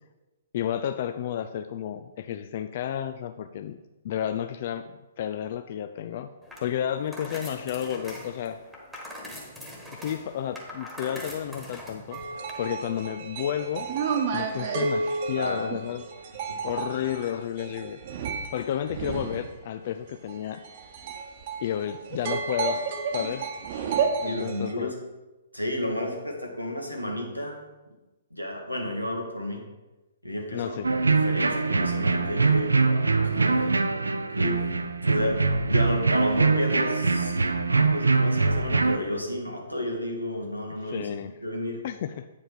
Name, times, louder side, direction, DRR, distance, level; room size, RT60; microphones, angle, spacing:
voice 1, 0.5-6.3 6.6-8.6 9.9-12.2 12.6-13.9 14.3-16.1 16.6-18.0 18.5-20.6 21.6-22.8 23.1-23.5 24.2-24.9 30.5-30.9 40.8-41.3 41.8-42.3, left 10 dB, 40° left, 10 dB, 0.3 m, -31 dB
sound 1, 6.4-12.5, left 1 dB, ahead, 1.5 m, -42 dB
sound 2, 12.1-19.5 20.3-24.7, right 5 dB, 40° right, 1.0 m, -31 dB
voice 2, 24.2-25.0 25.5-27.6 28.3-29.6 30.2-33.8 34.3-34.6 35.0-41.1 41.4-41.8, left 1 dB, 90° left, 0 dB, 1.8 m, -32 dB
sound 3, 30.8-39.0, right 3 dB, 70° right, 0.5 m, -23 dB
8.6 x 5.2 x 5.0 m, 1.1 s
figure-of-eight pair, 120°, 0 cm